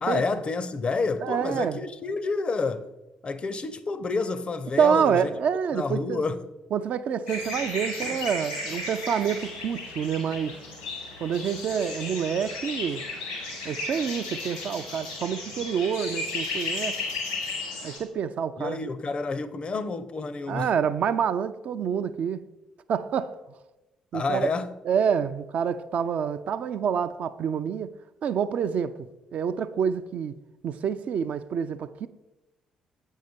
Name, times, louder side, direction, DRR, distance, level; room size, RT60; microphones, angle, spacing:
voice 1, 0.0-2.9 3.2-5.3 5.7-6.5 18.6-20.7 24.1-24.8, left 4 dB, 35° left, 0.6 m, -29 dB
voice 2, 1.2-1.8 4.8-6.2 6.7-10.6 11.2-13.1 13.7-17.0 17.8-18.9 20.5-22.4 22.9-23.3 24.1-24.5 24.9-27.9 28.2-29.0 29.3-30.3 30.6-32.1, right 7 dB, 50° right, 0.4 m, -27 dB
sound 1, 7.3-18.0, left 2 dB, 85° left, 2.0 m, -34 dB
7.8 x 5.5 x 5.2 m
figure-of-eight pair, 45°, 3 cm